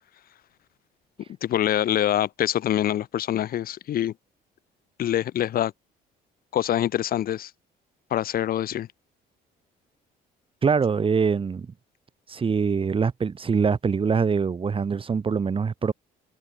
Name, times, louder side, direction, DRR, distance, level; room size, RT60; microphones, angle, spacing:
voice 1, 1.4-4.1 5.0-5.7 6.5-7.5 8.1-8.9, left 11 dB, 60° left, 3.6 m, -25 dB
voice 2, 10.6-11.7 12.3-15.9, right 5 dB, 30° right, 6.1 m, -23 dB
cardioid pair, 110°, 17 cm